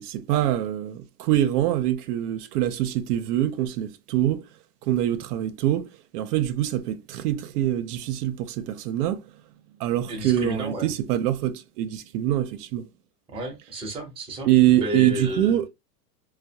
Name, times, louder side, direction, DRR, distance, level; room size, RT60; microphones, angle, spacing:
voice 1, 0.0-4.4 4.8-9.2 9.8-12.9 14.5-15.7, right 12 dB, 80° right, 0.6 m, -24 dB
voice 2, 10.1-10.9 13.3-15.6, equal, 15° right, 0.6 m, -32 dB
2.2 x 2.2 x 2.7 m
supercardioid pair, 140°, 46 cm